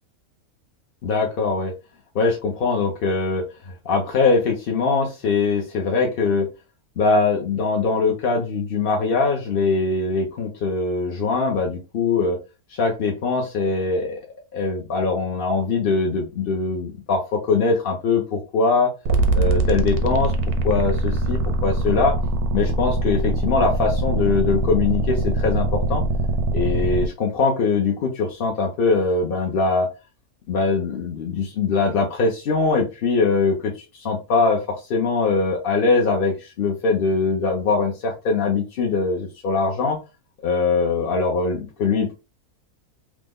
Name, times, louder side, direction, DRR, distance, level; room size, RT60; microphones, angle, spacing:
voice 1, 1.0-1.7 2.1-6.5 7.0-12.4 12.7-14.2 14.5-18.9 19.4-20.3 20.6-22.2 22.5-26.0 26.5-29.9 30.5-40.0 40.4-42.1, left 4 dB, 60° left, 0 dB, 0.6 m, -22 dB
sound 1, 19.1-27.1, right 2 dB, 85° right, 1.1 m, -22 dB
3.1 x 2.1 x 3.5 m, 0.29 s
omnidirectional pair, 1.6 m